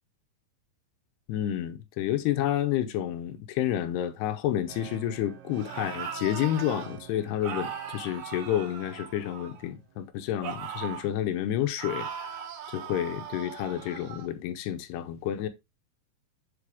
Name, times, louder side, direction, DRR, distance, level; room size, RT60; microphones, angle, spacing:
voice 1, 1.3-12.4 12.7-15.5, left 11 dB, 90° left, 3.0 m, -30 dB
sound 1, 4.7-10.6, right 11 dB, 80° right, 3.1 m, -49 dB
sound 2, 5.5-6.9 7.4-9.7 10.4-11.1 11.8-14.3, right 8 dB, 60° right, 3.5 m, -39 dB
9.8 x 5.8 x 3.5 m
omnidirectional pair, 4.6 m